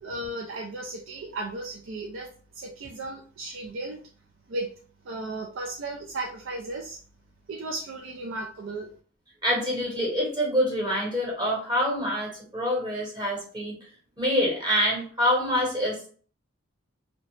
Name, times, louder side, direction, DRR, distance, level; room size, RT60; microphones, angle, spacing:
voice 1, 0.0-4.0 4.5-4.7 5.0-7.0 7.5-8.9, right 2 dB, 70° right, 0 dB, 0.4 m, -35 dB
voice 2, 9.4-13.7 14.2-16.1, equal, 20° right, -4 dB, 1.0 m, -26 dB
2.7 x 2.0 x 3.1 m, 0.43 s
head